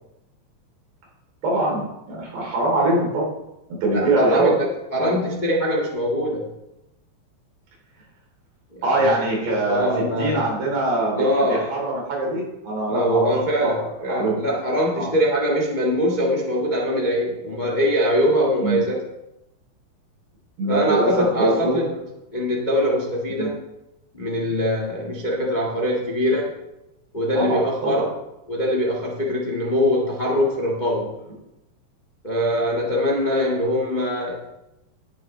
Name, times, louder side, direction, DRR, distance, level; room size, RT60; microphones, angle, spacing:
voice 1, 1.4-3.3 3.8-4.6 5.0-5.2 8.8-13.3 13.6-14.4 15.0-15.1 18.6-18.8 20.6-21.8 23.4-23.5 27.3-28.0, right 2 dB, 80° right, -3 dB, 5.9 m, -23 dB
voice 2, 3.9-4.5 4.9-6.5 8.7-9.2 9.5-10.5 11.2-11.7 12.9-19.0 20.7-21.9 22.3-23.6 24.1-26.5 27.1-28.1 28.5-31.1 32.2-34.4, equal, 90° left, -3 dB, 0.4 m, -22 dB
18.0 x 7.4 x 3.4 m, 0.91 s
omnidirectional pair, 4.8 m